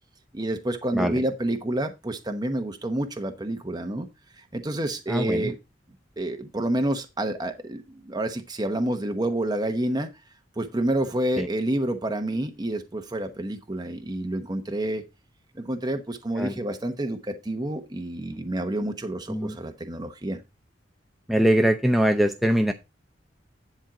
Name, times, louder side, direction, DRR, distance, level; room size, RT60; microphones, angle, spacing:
voice 1, 0.3-4.1 4.5-5.6 6.2-10.1 10.6-15.0 15.5-20.4, right 1 dB, 20° right, 6 dB, 1.0 m, -28 dB
voice 2, 5.1-5.5 11.4-11.5 16.4-16.5 19.3-19.6 21.3-22.7, right 1 dB, ahead, 5 dB, 0.6 m, -22 dB
10.5 x 4.5 x 4.9 m, 0.24 s
head